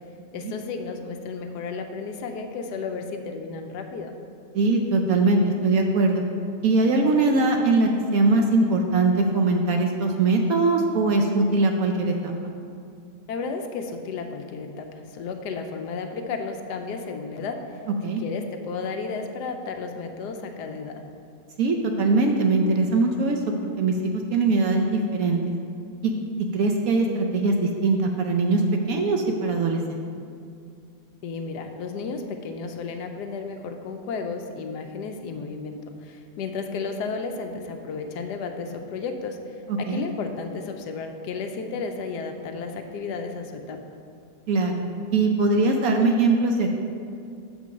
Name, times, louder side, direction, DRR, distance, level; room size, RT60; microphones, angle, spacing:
voice 1, 0.3-4.1 13.3-17.6 18.2-21.0 31.2-39.4 39.8-43.8, left 4 dB, 75° left, 5 dB, 1.2 m, -33 dB
voice 2, 4.5-6.2 6.6-12.3 18.0-18.2 21.6-25.4 26.0-26.1 26.5-28.6 28.9-30.0 39.7-40.0 44.5-44.8 45.1-46.7, right 3 dB, 65° right, 3 dB, 0.9 m, -21 dB
6.5 x 5.3 x 6.1 m, 2.5 s
omnidirectional pair, 1.9 m